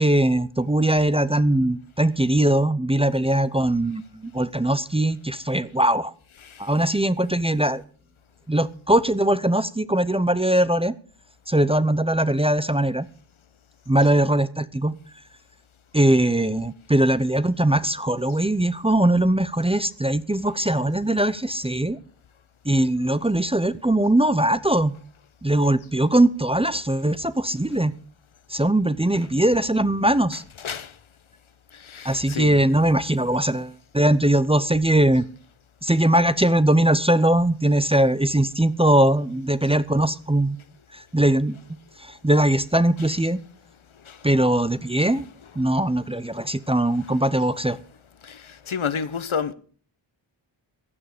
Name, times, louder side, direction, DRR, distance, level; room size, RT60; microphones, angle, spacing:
voice 1, 0.0-6.1 6.6-7.8 8.5-10.9 11.5-13.1 13.9-14.9 15.9-22.0 22.6-24.9 25.4-27.9 28.5-30.4 32.0-35.3 35.8-40.6 40.9-41.6 42.0-43.4 44.2-45.3 45.6-47.8, right 1 dB, 10° right, 0.6 m, -21 dB
voice 2, 30.6-30.9 31.8-32.6 44.1-44.2 48.2-48.4 48.7-49.5, left 6 dB, 75° left, 1.2 m, -29 dB
15.5 x 11.5 x 5.1 m
wide cardioid pair, 85°, 48 cm